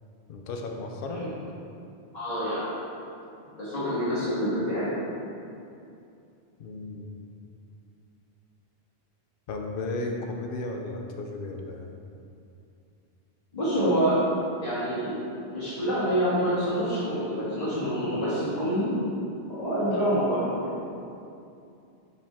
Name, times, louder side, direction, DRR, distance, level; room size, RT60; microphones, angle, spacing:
voice 1, 0.3-1.3 6.6-7.1 9.5-11.9, left 2 dB, 60° left, 2 dB, 0.8 m, -34 dB
voice 2, 2.1-2.8 3.6-4.9 13.5-14.2 14.6-15.2 15.5-18.9 19.5-20.7, equal, 40° left, -15 dB, 1.7 m, -27 dB
5.3 x 5.0 x 3.5 m, 2.6 s
omnidirectional pair, 1.1 m